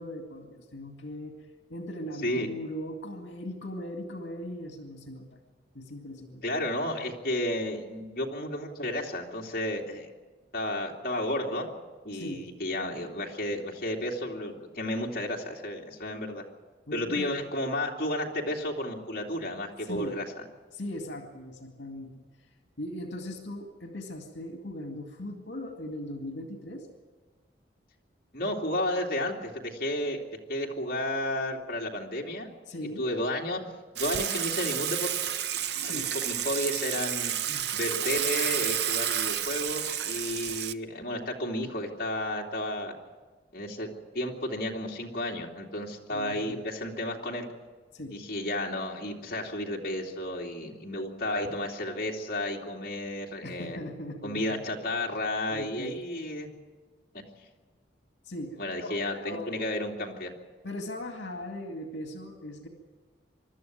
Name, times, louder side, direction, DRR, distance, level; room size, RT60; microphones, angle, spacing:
voice 1, 0.0-5.4 5.7-6.4 12.1-12.4 16.9-17.3 19.8-20.2 20.7-22.5 22.8-26.9 32.7-33.1 35.8-36.1 37.5-37.7 46.1-46.6 47.9-48.2 53.4-54.6 55.5-56.0 58.2-59.7 60.6-62.7, left 1 dB, 80° left, 3 dB, 2.2 m, -39 dB
voice 2, 6.4-10.1 10.5-11.7 12.0-16.4 16.9-20.2 28.3-30.2 30.5-32.5 33.0-33.6 33.9-35.1 35.9-37.3 37.7-42.9 43.5-47.5 48.1-53.8 54.2-56.5 58.6-60.3, left 1 dB, 50° left, -1 dB, 2.8 m, -32 dB
Water / Water tap faucet / Sink (filling or washing), 34.0-40.7, right 10 dB, 65° right, 0.6 m, -30 dB
25.0 x 12.5 x 9.3 m, 1.3 s
head